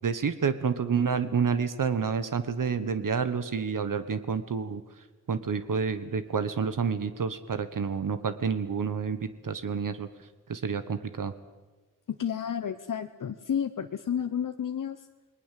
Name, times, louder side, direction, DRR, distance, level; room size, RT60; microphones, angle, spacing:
voice 1, 0.0-4.8 5.3-10.1 10.5-11.3, right 6 dB, 70° right, 11 dB, 1.2 m, -29 dB
voice 2, 12.1-15.0, left 8 dB, 65° left, 8 dB, 0.9 m, -31 dB
28.0 x 20.0 x 7.6 m, 1.2 s
wide cardioid pair, 125°, 34 cm